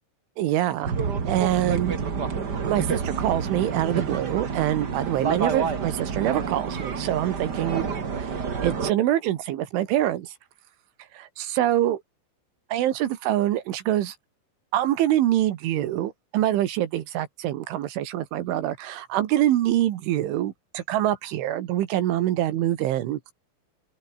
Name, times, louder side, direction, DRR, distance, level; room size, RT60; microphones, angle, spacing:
voice 1, 0.4-0.9 1.3-2.0 2.6-7.9 8.2-10.4 11.1-12.0 12.7-14.2 14.7-23.2, right 13 dB, 80° right, 4.0 m, -25 dB
sound 1, 0.8-8.9, right 5 dB, 50° right, 1.2 m, -28 dB
open air
omnidirectional pair, 5.6 m